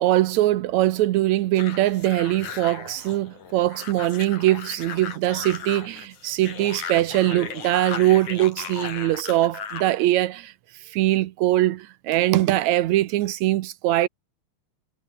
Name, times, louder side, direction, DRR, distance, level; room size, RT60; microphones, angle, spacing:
voice 1, 0.0-10.5 10.9-14.1, right 15 dB, 80° right, 2.0 m, -22 dB
sound 1, 1.6-9.9, left 7 dB, 75° left, 4.4 m, -36 dB
omnidirectional pair, 3.4 m